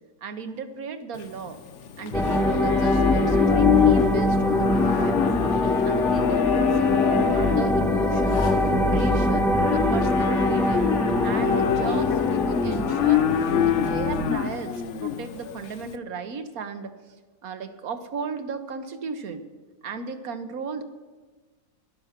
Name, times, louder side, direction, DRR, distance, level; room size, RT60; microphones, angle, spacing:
voice 1, 0.2-1.6 2.0-5.2 5.8-8.5 8.9-10.9 11.2-13.3 13.6-16.9 17.4-19.4 19.8-20.8, right 4 dB, 70° right, 9 dB, 1.5 m, -35 dB
Livestock farm animals working animals, 1.2-15.9, left 8 dB, 60° left, 0.9 m, -25 dB
sound 1, 2.1-14.3, left 1 dB, ahead, 0.7 m, -24 dB
sound 2, 5.6-15.7, left 10 dB, 85° left, 1.1 m, -33 dB
14.5 x 11.5 x 5.9 m, 1.3 s
omnidirectional pair, 1.6 m